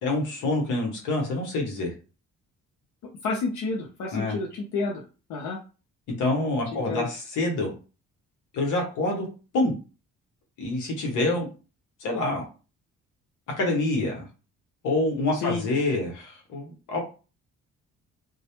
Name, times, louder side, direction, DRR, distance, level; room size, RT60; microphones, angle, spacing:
voice 1, 0.0-1.9 4.1-4.4 6.2-7.7 8.5-9.3 9.5-9.7 10.6-11.5 12.0-12.4 13.5-14.2 14.8-17.0, left 2 dB, 90° left, 0 dB, 0.9 m, -26 dB
voice 2, 3.2-5.0 5.3-5.6 6.7-7.1 15.3-15.7, left 3 dB, 70° left, 0 dB, 0.6 m, -30 dB
2.2 x 2.0 x 2.9 m, 0.34 s
cardioid pair, 90°, 30 cm